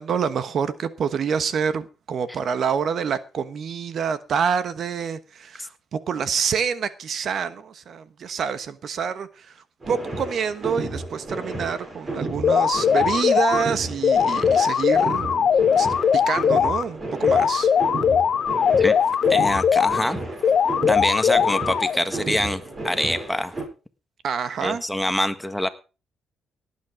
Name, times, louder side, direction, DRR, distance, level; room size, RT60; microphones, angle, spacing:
voice 1, 0.0-15.5 15.7-17.7 24.2-24.8, right 6 dB, 60° right, 13 dB, 1.2 m, -27 dB
sound 1, 9.8-23.6, right 2 dB, 30° right, 7.3 m, -33 dB
sound 2, 12.4-13.6 14.0-16.8 17.2-20.0 20.4-22.0, left 7 dB, 50° left, 1.0 m, -20 dB
voice 2, 19.3-20.2 20.9-23.5 24.6-25.7, left 1 dB, 5° left, 9 dB, 1.6 m, -25 dB
18.0 x 8.5 x 5.0 m, 0.34 s
cardioid pair, 90°, 0 cm